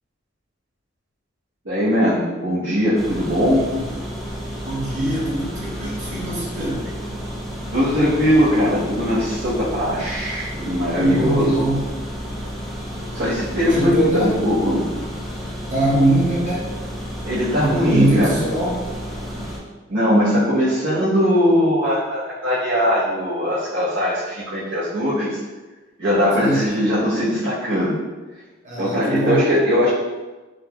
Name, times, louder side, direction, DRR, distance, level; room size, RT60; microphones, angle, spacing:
voice 1, 1.6-3.6 7.7-11.6 13.1-14.8 17.2-18.4 19.9-25.4 26.0-28.0 28.8-29.9, equal, 75° right, -11 dB, 1.0 m, -20 dB
sound 1, 3.0-19.6, equal, ahead, 0.6 m, -31 dB
voice 2, 4.6-6.9 11.0-11.9 13.6-14.4 15.7-16.7 17.6-18.8 26.4-26.8 28.6-29.4, right 1 dB, 40° right, -4 dB, 0.8 m, -22 dB
3.9 x 2.3 x 2.9 m, 1.2 s
head